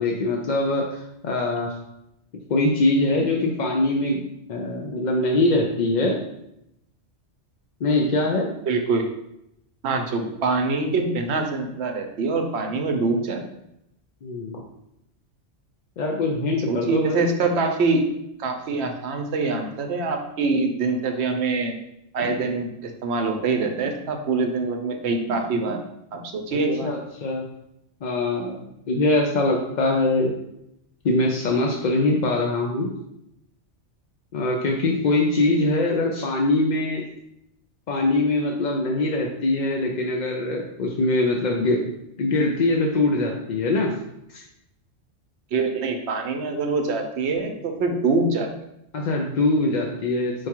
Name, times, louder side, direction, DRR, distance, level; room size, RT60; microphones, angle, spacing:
voice 1, 0.0-1.7 2.5-4.2 4.5-6.2 7.8-8.5 14.2-14.6 16.0-17.3 26.8-27.5 28.0-30.3 31.0-32.9 34.3-37.1 37.9-41.8 42.2-43.9 44.3-44.4 48.9-50.5, left 2 dB, 55° left, 0 dB, 0.5 m, -23 dB
voice 2, 8.7-9.0 9.8-13.4 16.7-18.0 18.4-21.8 22.1-25.8 26.1-26.9 45.5-48.5, right 3 dB, 70° right, 4 dB, 0.9 m, -24 dB
4.7 x 2.3 x 4.3 m, 0.82 s
omnidirectional pair, 1.2 m